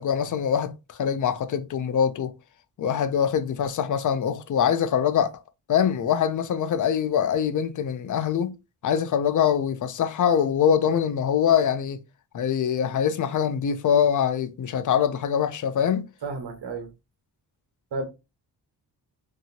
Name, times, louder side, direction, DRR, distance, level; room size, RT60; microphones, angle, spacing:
voice 1, 0.0-2.3 2.8-5.3 5.7-8.5 8.8-12.0 12.3-16.1, left 8 dB, 50° left, 0.5 m, -23 dB
voice 2, 16.2-16.9 17.9-18.0, right 3 dB, 85° right, 1.2 m, -31 dB
2.9 x 2.6 x 2.7 m
wide cardioid pair, 115°, 40 cm